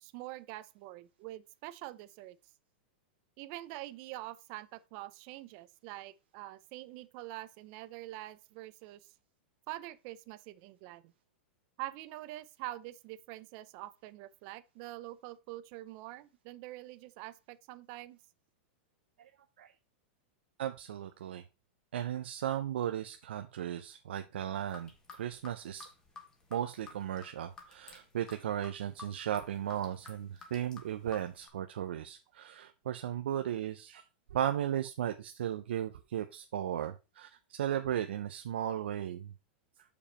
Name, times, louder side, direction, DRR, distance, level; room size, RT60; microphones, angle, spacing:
voice 1, 0.0-2.4 3.4-9.0 9.7-11.1 11.8-18.2, right 16 dB, 35° right, 0.5 m, -45 dB
voice 2, 20.6-21.4 21.9-25.8 26.5-34.0 34.3-39.3, right 10 dB, 85° right, 0.7 m, -36 dB
sound 1, 24.5-31.5, left 4 dB, 10° left, 1.1 m, -52 dB
7.0 x 5.2 x 4.3 m
supercardioid pair, 170°, 6 cm